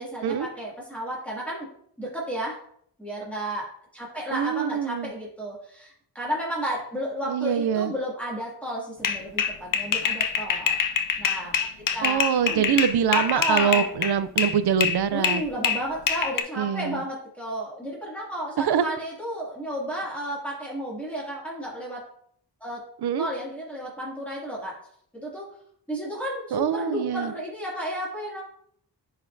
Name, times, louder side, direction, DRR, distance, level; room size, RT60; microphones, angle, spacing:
voice 1, 0.0-1.7 2.0-2.6 3.0-11.6 11.9-12.7 13.1-13.9 15.1-22.1 22.6-22.9 23.2-24.8 25.1-25.5 25.9-28.4, equal, 5° left, -6 dB, 2.3 m, -32 dB
voice 2, 4.3-5.1 7.2-7.9 12.0-15.4 16.6-17.0 18.6-18.8 23.0-23.3 26.5-27.3, right 8 dB, 65° right, 13 dB, 0.5 m, -24 dB
sound 1, 9.0-14.6 14.8-16.4, left 7 dB, 50° left, 0.6 m, -25 dB
9.8 x 4.2 x 2.6 m, 0.66 s
wide cardioid pair, 90°, 42 cm